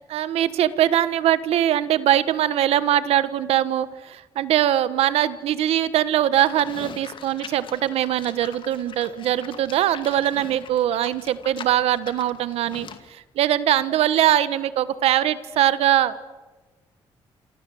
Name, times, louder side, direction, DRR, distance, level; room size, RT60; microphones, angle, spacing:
voice 1, 0.1-16.1, right 12 dB, 85° right, 14 dB, 1.3 m, -22 dB
Livestock farm animals working animals, 6.3-13.1, left 7 dB, 55° left, 2.4 m, -42 dB
28.0 x 27.0 x 7.8 m, 1.2 s
cardioid pair, 90°, 10 cm